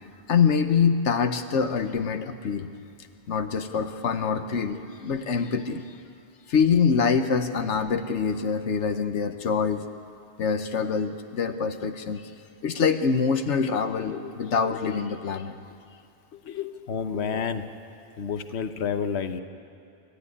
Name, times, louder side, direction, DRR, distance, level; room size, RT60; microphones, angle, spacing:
voice 1, 0.3-2.7 3.3-6.0 6.5-9.9 10.4-12.3 12.6-15.7 16.5-16.8, left 6 dB, 85° left, 7 dB, 1.3 m, -25 dB
voice 2, 16.9-17.7 18.2-19.4, left 6 dB, 70° left, 8 dB, 1.2 m, -29 dB
29.0 x 13.5 x 9.8 m, 2.4 s
omnidirectional pair, 1.2 m